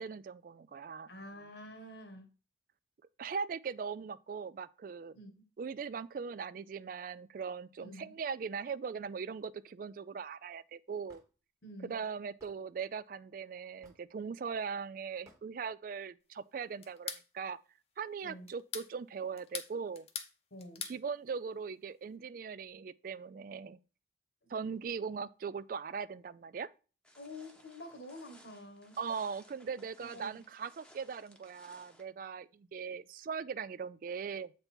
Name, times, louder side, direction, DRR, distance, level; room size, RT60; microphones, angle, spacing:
voice 1, 0.0-1.1 3.2-5.2 5.6-11.2 11.8-17.6 18.0-20.1 20.8-23.8 24.5-26.7 29.0-34.5, right 6 dB, 50° right, 0.3 m, -40 dB
voice 2, 1.1-2.3 5.1-5.3 7.8-8.1 11.6-12.0 18.2-18.5 20.5-20.9 24.4-24.5 27.2-29.0 30.0-30.4, left 1 dB, 70° left, 1.5 m, -48 dB
Hammer / Wood, 11.1-11.3 12.4-12.6 13.8-14.1 15.3-15.4, right 1 dB, 15° right, 1.1 m, -60 dB
sound 1, 16.8-17.3 18.5-18.9 19.4-20.3 20.6-21.0, left 7 dB, 35° left, 0.7 m, -41 dB
sound 2, 27.0-32.0, equal, 5° left, 0.9 m, -61 dB
7.8 x 4.0 x 4.4 m
head